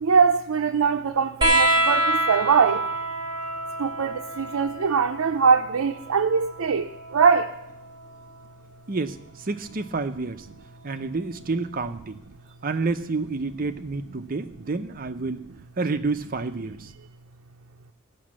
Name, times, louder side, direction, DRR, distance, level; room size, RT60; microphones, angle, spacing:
voice 1, 0.0-2.8 3.8-7.5, right 6 dB, 80° right, 0.5 m, -22 dB
sound 1, 1.4-8.5 9.8-10.7 12.0-12.1, right 1 dB, 20° right, 2.6 m, -27 dB
voice 2, 8.9-10.5 10.8-12.2 12.6-15.5 15.8-16.9, right 3 dB, 45° right, 0.6 m, -29 dB
17.0 x 6.0 x 7.4 m
head